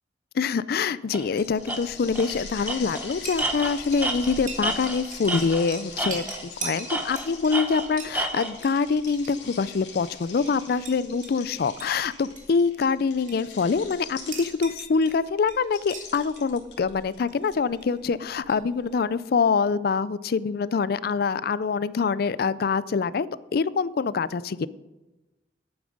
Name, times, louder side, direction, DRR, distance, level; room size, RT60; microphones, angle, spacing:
voice 1, 0.3-23.3 23.5-24.7, left 5 dB, 60° left, 18 dB, 0.4 m, -25 dB
Tools, 1.1-1.3 1.7-1.8 2.2-2.4 2.7-5.7 6.0-6.5 6.9-8.5, right 2 dB, 10° right, 1.0 m, -30 dB
sound 1, 1.2-14.9 15.6-17.5, left 6 dB, 80° left, 2.7 m, -43 dB
Chink clink, 1.3-19.0, right 3 dB, 45° right, 2.3 m, -43 dB
11.0 x 8.8 x 5.3 m, 1.1 s
head